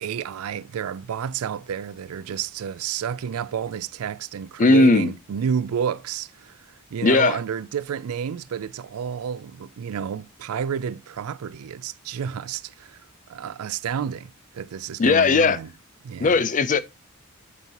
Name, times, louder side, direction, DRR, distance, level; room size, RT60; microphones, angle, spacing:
voice 1, 0.0-6.6 6.9-13.0 13.3-15.7 16.0-16.4, right 7 dB, 75° right, 0.4 m, -30 dB
voice 2, 4.6-5.1 7.0-7.4 15.0-15.6 16.2-16.8, left 3 dB, 35° left, 0.5 m, -17 dB
8.2 x 5.4 x 2.9 m
head